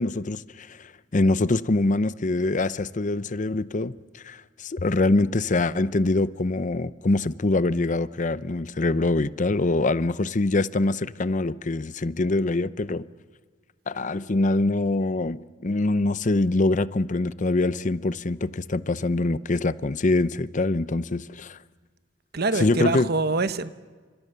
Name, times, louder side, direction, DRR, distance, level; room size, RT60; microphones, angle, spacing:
voice 1, 0.0-13.1 13.9-21.6 22.5-23.1, left 2 dB, 40° left, 0.7 m, -24 dB
voice 2, 22.3-23.7, right 3 dB, 55° right, 1.1 m, -25 dB
30.0 x 26.5 x 6.8 m
head